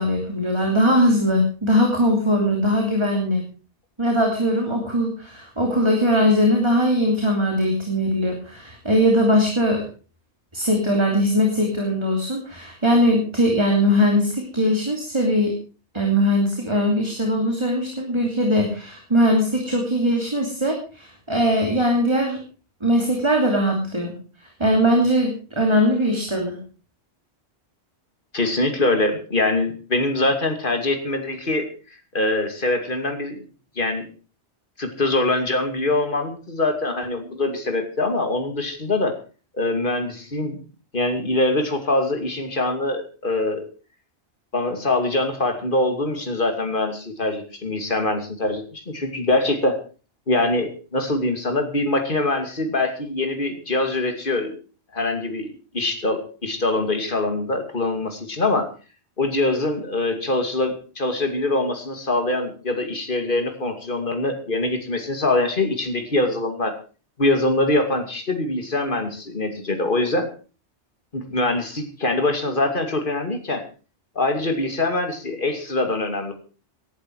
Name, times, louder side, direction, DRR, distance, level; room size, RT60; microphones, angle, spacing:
voice 1, 0.0-3.4 4.0-9.8 10.5-15.6 15.9-22.4 22.8-24.1 24.4-26.6, equal, 25° right, 1 dB, 3.1 m, -20 dB
voice 2, 28.3-31.7 32.1-33.4 33.8-34.1 34.8-39.2 39.5-40.6 40.9-43.6 44.5-49.8 50.3-54.5 54.9-55.5 55.7-58.7 59.2-66.8 67.2-70.3 71.1-73.6 74.2-76.3, left 2 dB, 50° left, 5 dB, 2.7 m, -23 dB
17.5 x 12.0 x 4.7 m, 0.36 s
omnidirectional pair, 1.2 m